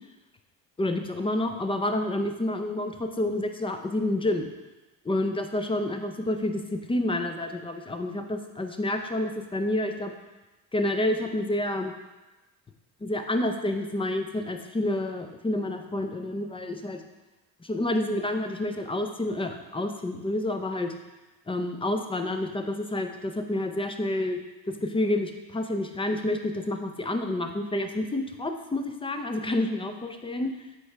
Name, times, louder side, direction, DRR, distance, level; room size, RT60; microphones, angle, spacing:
voice 1, 0.8-4.5 5.0-10.1 10.7-12.0 13.0-17.0 17.6-20.9 21.5-24.4 24.8-30.5, left 1 dB, 10° left, 6 dB, 0.5 m, -29 dB
7.9 x 4.7 x 3.3 m, 1.1 s
supercardioid pair, 90°, 48 cm